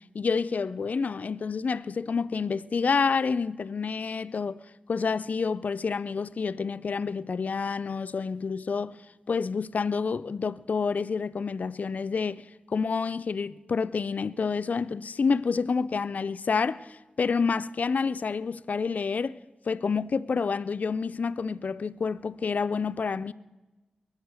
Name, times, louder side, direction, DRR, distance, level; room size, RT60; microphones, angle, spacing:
voice 1, 0.1-4.6 4.9-9.0 9.3-19.4 19.7-23.3, left 5 dB, 70° left, 0.5 m, -28 dB
21.5 x 9.6 x 6.3 m
cardioid pair, 55°, 3 cm